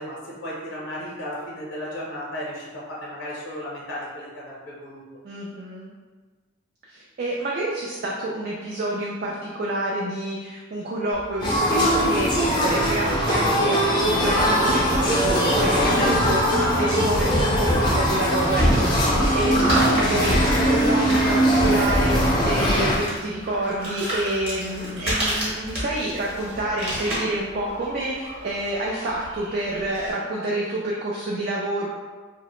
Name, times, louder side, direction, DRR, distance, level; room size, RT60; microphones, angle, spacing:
voice 1, 0.0-5.0 15.9-16.1 24.6-24.9, equal, 65° left, -5 dB, 0.6 m, -34 dB
voice 2, 5.2-5.9 6.9-31.9, right 1 dB, 45° right, -4 dB, 0.3 m, -28 dB
sound 1, 11.1-30.1, equal, 30° right, 0.9 m, -33 dB
sound 2, 11.4-23.0, equal, 20° left, 0.4 m, -20 dB
2.8 x 2.1 x 3.0 m, 1.3 s
head